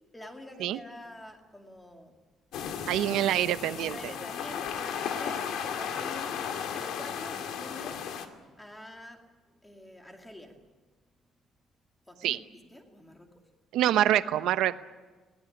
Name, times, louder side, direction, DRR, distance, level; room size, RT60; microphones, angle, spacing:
voice 1, 0.1-2.2 3.6-6.5 6.7-8.1 8.6-9.3 9.6-10.6 12.1-12.4 12.7-13.4, left 1 dB, 5° left, 3 dB, 2.5 m, -47 dB
sound 1, 2.5-8.3, left 7 dB, 75° left, 2.2 m, -35 dB
voice 2, 2.9-4.0 12.2-12.4 13.7-14.7, right 12 dB, 80° right, 12 dB, 0.9 m, -25 dB
21.5 x 18.0 x 10.0 m, 1.3 s
cardioid pair, 170°, 0 cm